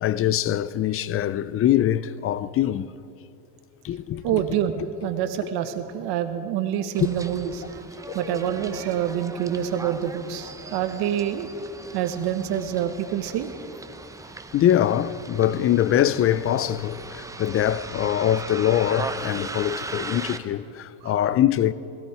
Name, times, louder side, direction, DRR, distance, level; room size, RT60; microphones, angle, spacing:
voice 1, 0.0-2.9 3.8-4.4 14.5-21.7, left 11 dB, 35° left, 0.4 m, -23 dB
voice 2, 4.2-7.8 8.1-11.5 11.9-13.5 14.2-14.3 21.0-21.1, right 10 dB, 65° right, 1.3 m, -27 dB
Bus, 6.9-20.4, right 3 dB, 10° right, 0.6 m, -38 dB
16.5 x 16.0 x 4.8 m
supercardioid pair, 105°, 42 cm